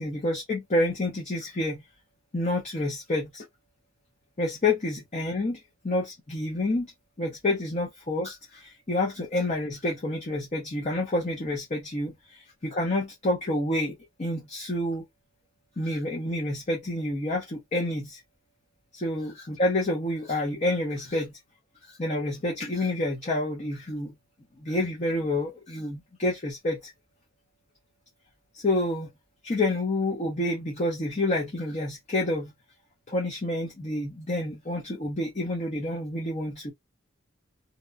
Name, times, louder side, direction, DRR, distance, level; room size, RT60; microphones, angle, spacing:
voice 1, 0.0-1.8 2.3-3.4 4.4-5.6 5.8-6.9 7.2-15.0 15.8-18.2 18.9-21.2 21.9-24.1 24.6-26.8 28.5-29.1 29.4-32.5 33.1-36.7, left 1 dB, 35° left, 0.7 m, -28 dB
2.8 x 2.2 x 2.3 m
head